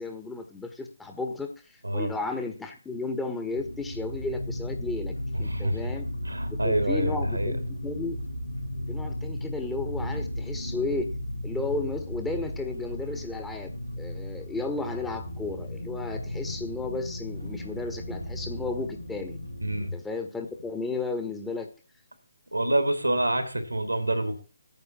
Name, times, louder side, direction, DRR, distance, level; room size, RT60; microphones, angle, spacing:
voice 1, 0.0-1.5 1.9-6.1 6.5-8.2 8.9-11.1 11.4-19.4 19.9-21.7, left 3 dB, 5° left, 5 dB, 1.4 m, -33 dB
sound 1, 3.5-19.9, left 1 dB, 85° left, 2.0 m, -35 dB
voice 2, 5.3-5.9 6.2-7.5 19.6-20.0 22.5-24.4, right 1 dB, 85° right, 8 dB, 2.8 m, -27 dB
9.3 x 7.2 x 7.3 m, 0.35 s
figure-of-eight pair, 140°, 0 cm